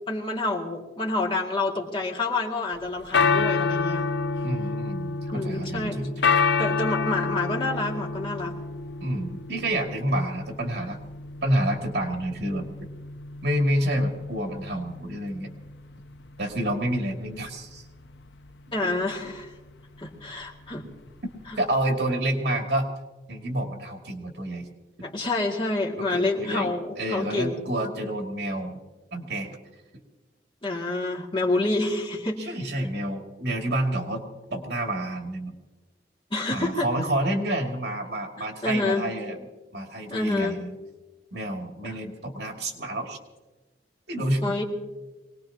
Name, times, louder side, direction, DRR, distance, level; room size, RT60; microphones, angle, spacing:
voice 1, 0.1-4.1 5.3-6.0 6.6-8.5 18.7-19.5 20.0-20.9 21.5-21.6 25.0-27.6 30.6-32.5 36.3-36.9 38.6-39.1 40.1-40.6 41.8-41.9 44.4-44.6, left 2 dB, 30° left, -2 dB, 2.2 m, -28 dB
sound 1, 2.8-21.8, left 4 dB, 85° left, 0.6 m, -29 dB
voice 2, 4.4-6.1 9.0-11.0 11.4-12.7 13.4-15.5 16.4-17.8 19.2-19.3 21.6-22.9 23.3-24.7 26.0-28.8 29.1-29.5 32.4-34.2 34.5-35.5 36.5-39.5 39.7-40.7 41.3-43.2 44.1-44.6, right 1 dB, 70° right, 2 dB, 2.4 m, -28 dB
24.5 x 19.5 x 2.9 m, 1.2 s
head